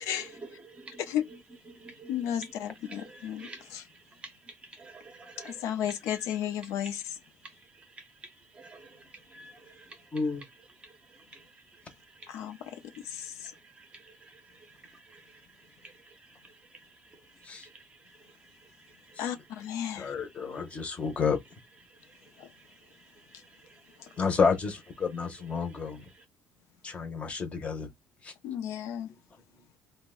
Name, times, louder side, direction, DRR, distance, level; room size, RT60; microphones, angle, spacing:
voice 1, 0.0-1.4 1.7-6.3 6.6-6.9 7.4-19.2 19.8-21.2 21.8-24.4 25.2-26.2, right 3 dB, 20° right, 0.6 m, -52 dB
voice 2, 2.1-3.8 5.4-7.0 12.3-13.5 19.2-20.1 22.4-22.5 24.0-24.1 28.4-29.1, left 10 dB, 75° left, 0.6 m, -34 dB
voice 3, 10.1-10.4 17.5-17.6 20.0-21.4 24.2-26.0 26.8-27.9 28.2-28.3, left 5 dB, 25° left, 0.7 m, -30 dB
2.6 x 2.1 x 3.6 m
cardioid pair, 155°, 5 cm